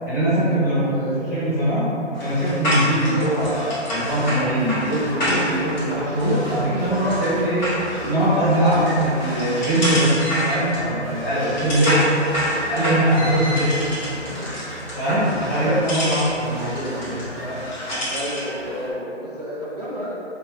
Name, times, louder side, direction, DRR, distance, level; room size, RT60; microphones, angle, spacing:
voice 1, 0.0-0.9 1.3-1.9 2.2-7.7 8.0-10.1 10.4-12.0 12.7-13.7 14.9-17.6, right 1 dB, 15° left, -14 dB, 0.7 m, -21 dB
voice 2, 0.8-1.5 3.2-3.6 18.1-20.2, equal, 35° right, -9 dB, 0.5 m, -32 dB
sound 1, 2.1-18.5, equal, 35° left, 1.1 m, -28 dB
sound 2, 3.4-18.9, equal, 55° right, 1.0 m, -37 dB
4.9 x 3.0 x 2.3 m, 2.8 s
hypercardioid pair, 160°, 37 cm